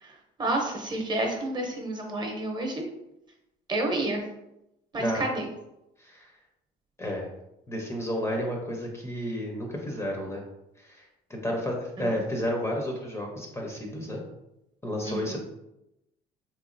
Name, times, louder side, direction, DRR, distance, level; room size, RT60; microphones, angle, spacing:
voice 1, 0.0-2.9 3.7-4.2 4.9-5.4 12.0-12.2 15.0-15.4, right 2 dB, 25° right, 1 dB, 0.7 m, -30 dB
voice 2, 6.0-6.3 7.0-7.3 7.7-10.4 10.8-14.2 14.8-15.4, equal, 15° left, 0 dB, 0.6 m, -31 dB
3.4 x 3.0 x 2.5 m, 0.88 s
cardioid pair, 110°, 17 cm